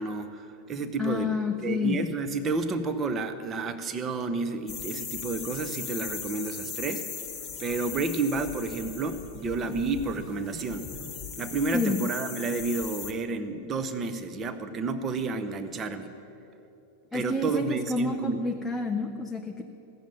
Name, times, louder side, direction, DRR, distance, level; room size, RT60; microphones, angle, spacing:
voice 1, 0.0-1.3 1.6-7.1 7.6-10.9 11.4-16.1 17.1-18.4, right 3 dB, 25° right, 7 dB, 0.9 m, -30 dB
voice 2, 1.0-2.0 11.7-12.0 17.1-19.6, left 3 dB, 5° left, 2 dB, 0.6 m, -29 dB
sound 1, 4.7-13.1, left 6 dB, 25° left, 1.3 m, -38 dB
15.0 x 7.4 x 9.2 m, 2.8 s
figure-of-eight pair, 90°, 0 cm